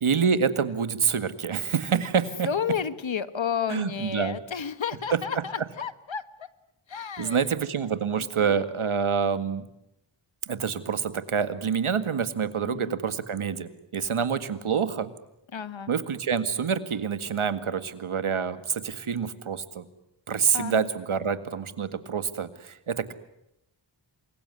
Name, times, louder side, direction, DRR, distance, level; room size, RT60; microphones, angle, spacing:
voice 1, 0.0-2.5 3.7-4.4 7.2-9.7 10.5-15.1 15.9-19.9 20.3-23.1, right 6 dB, 80° right, 11 dB, 2.0 m, -27 dB
voice 2, 2.4-6.5 6.9-7.5 8.1-8.6 12.6-12.9 15.5-15.9 20.5-20.9, left 7 dB, 65° left, 13 dB, 1.6 m, -32 dB
27.5 x 22.5 x 9.7 m, 0.84 s
wide cardioid pair, 65°, 48 cm